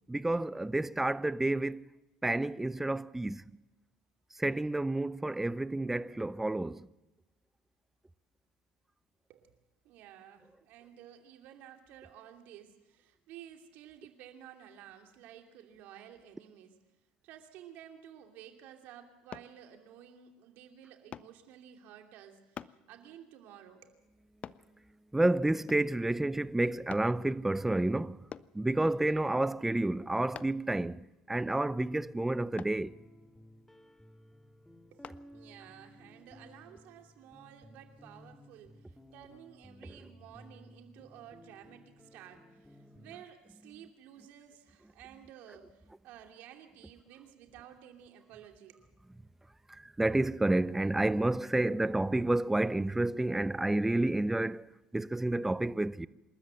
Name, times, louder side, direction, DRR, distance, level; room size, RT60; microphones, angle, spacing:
voice 1, 0.1-1.9 2.2-3.4 4.3-6.9 25.1-28.3 28.5-32.9 49.7-56.1, right 2 dB, 10° right, 0.7 m, -30 dB
voice 2, 9.8-16.8 17.2-24.0 34.9-48.8, right 10 dB, 65° right, 2.7 m, -53 dB
sound 1, 19.3-19.5 21.1-21.4 22.6-22.8 24.4-24.7 25.7-26.0 26.9-27.1 28.3-28.6 30.3-30.7 32.6-32.8 35.0-35.2 35.8-35.9, left 8 dB, 40° left, 0.6 m, -45 dB
sound 2, 32.7-43.2, equal, 5° left, 2.0 m, -56 dB
27.0 x 13.0 x 7.9 m
hypercardioid pair, 80°, 3 cm